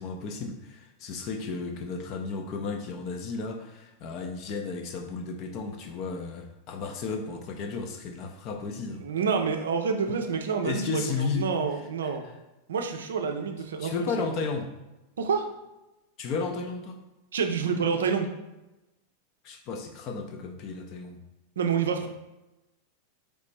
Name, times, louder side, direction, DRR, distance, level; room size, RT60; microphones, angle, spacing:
voice 1, 0.0-9.1 10.6-11.5 12.2-12.3 13.8-14.7 16.2-17.0 19.4-21.2, left 4 dB, 40° left, 5 dB, 0.5 m, -33 dB
voice 2, 9.0-12.2 12.7-13.9 15.2-15.5 17.3-18.3 21.6-22.1, right 6 dB, 65° right, 5 dB, 0.5 m, -28 dB
4.1 x 3.1 x 3.2 m, 1.0 s
figure-of-eight pair, 90°, 0 cm